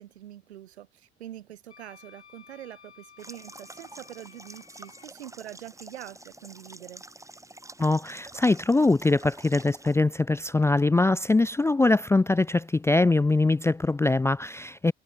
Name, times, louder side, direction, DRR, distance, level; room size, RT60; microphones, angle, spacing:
voice 1, 0.0-7.0, right 12 dB, 75° right, 1.9 m, -44 dB
Wind instrument woodwind instrument, 1.7-5.1, left 7 dB, 85° left, 1.7 m, -54 dB
sound 1, 3.2-10.0, right 1 dB, 10° right, 5.3 m, -47 dB
voice 2, 7.8-14.9, left 2 dB, 10° left, 0.4 m, -22 dB
figure-of-eight pair, 50°, 32 cm